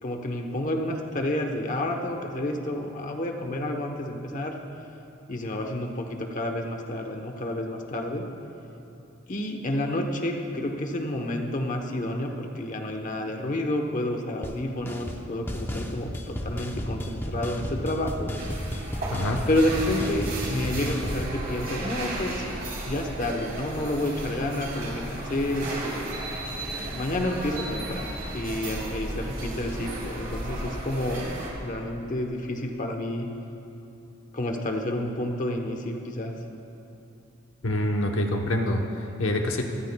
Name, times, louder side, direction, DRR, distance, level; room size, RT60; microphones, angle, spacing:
voice 1, 0.0-4.6 5.3-8.2 9.3-18.3 19.5-22.4 22.9-26.2 26.9-31.3 31.6-33.3 34.3-36.3, left 1 dB, 40° left, 3 dB, 0.9 m, -29 dB
sound 1, 14.4-14.6 14.8-15.2 15.5-21.3, equal, 10° left, 0.8 m, -33 dB
sound 2, 18.4-31.5, right 1 dB, 45° right, 3.6 m, -34 dB
voice 2, 19.1-19.4 37.6-39.6, left 1 dB, 70° left, 2 dB, 1.0 m, -26 dB
24.0 x 13.5 x 2.3 m, 2.8 s
head